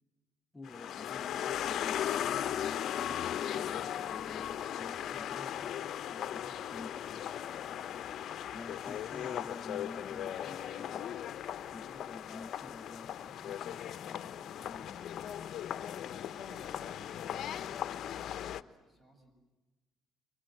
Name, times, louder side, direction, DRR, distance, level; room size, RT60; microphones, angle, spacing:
voice 1, 0.5-7.3 8.5-11.2 11.7-15.2, left 3 dB, 15° left, 9 dB, 0.8 m, -51 dB
sound 1, 0.7-18.6, left 10 dB, 60° left, 0.8 m, -37 dB
sound 2, 8.4-12.7, right 6 dB, 85° right, 7.9 m, -71 dB
voice 2, 16.0-17.6 18.0-19.3, equal, 15° right, 5 dB, 7.8 m, -59 dB
29.0 x 24.0 x 7.9 m, 1.2 s
supercardioid pair, 80°, 0 cm